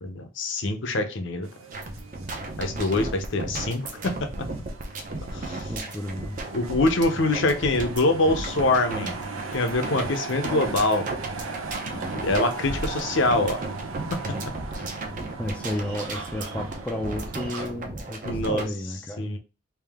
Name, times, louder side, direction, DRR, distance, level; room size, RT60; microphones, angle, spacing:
voice 1, 0.0-1.5 2.6-4.3 5.2-5.7 6.5-9.2 9.5-11.1 11.8-13.6 18.2-18.7 19.2-19.4, left 2 dB, 60° left, 6 dB, 0.7 m, -24 dB
sound 1, 1.4-17.6, right 4 dB, 90° right, 0.7 m, -39 dB
sound 2, 1.7-18.6, right 2 dB, 40° right, 0.7 m, -35 dB
voice 2, 5.7-6.4 15.4-19.4, left 1 dB, 5° left, 2 dB, 0.4 m, -32 dB
3.6 x 2.7 x 3.5 m, 0.31 s
head